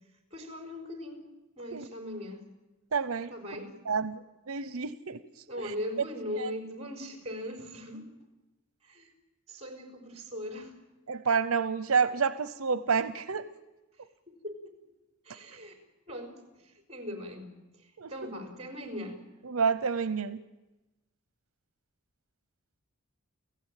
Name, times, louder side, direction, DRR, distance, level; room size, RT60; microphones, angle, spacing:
voice 1, 0.3-1.2 1.6-2.5 3.3-3.8 5.5-8.1 8.8-9.1 9.5-10.7 14.3-14.8 15.2-15.8 16.1-17.5 17.8-19.2, left 1 dB, 30° right, 6 dB, 4.9 m, -40 dB
voice 2, 2.9-3.3 3.9-5.2 5.6-5.7 6.4-6.5 11.1-13.5 18.0-18.1 19.4-20.4, right 5 dB, 85° right, 14 dB, 0.8 m, -29 dB
30.0 x 16.0 x 9.1 m, 1.1 s
head